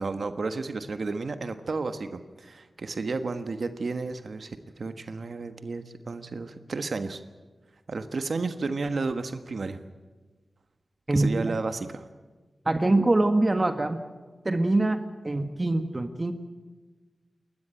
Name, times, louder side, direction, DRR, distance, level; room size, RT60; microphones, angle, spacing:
voice 1, 0.0-7.2 7.9-9.8 11.1-12.0, right 3 dB, 65° right, 9 dB, 1.4 m, -32 dB
voice 2, 11.1-11.6 12.6-14.0 14.4-16.3, right 2 dB, 30° right, 8 dB, 1.5 m, -24 dB
29.0 x 13.0 x 9.0 m, 1.3 s
wide cardioid pair, 70°, 0 cm